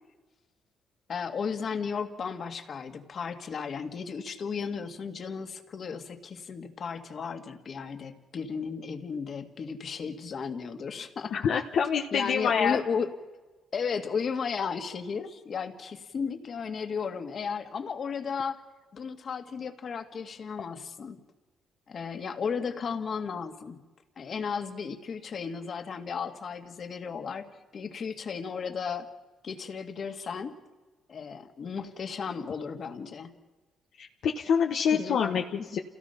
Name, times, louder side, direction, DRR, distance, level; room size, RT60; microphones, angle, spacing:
voice 1, 1.1-11.6 12.1-13.1 13.7-18.6 18.9-21.2 21.9-23.8 24.2-29.1 29.4-30.6 31.1-33.4 34.9-35.7, left 6 dB, 50° left, 6 dB, 2.1 m, -34 dB
voice 2, 11.3-12.8 34.0-35.4 35.7-35.8, left 7 dB, 70° left, 2 dB, 1.2 m, -26 dB
28.5 x 17.0 x 5.8 m, 1.2 s
cardioid pair, 90°, 0 cm